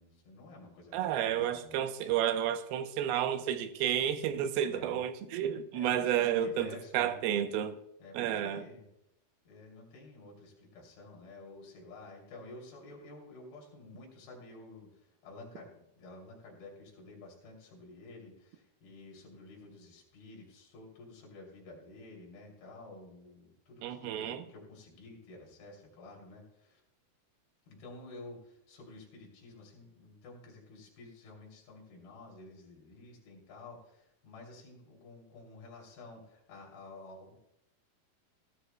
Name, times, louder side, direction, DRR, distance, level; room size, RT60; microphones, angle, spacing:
voice 1, 0.0-1.7 4.6-5.0 5.7-7.2 8.0-8.9 9.4-26.8 27.7-37.4, left 2 dB, 75° left, 4.8 m, -51 dB
voice 2, 0.9-6.7 6.9-7.8 8.1-8.6 23.8-24.4, right 10 dB, 80° right, 2.7 m, -31 dB
18.0 x 12.5 x 2.2 m
omnidirectional pair, 4.4 m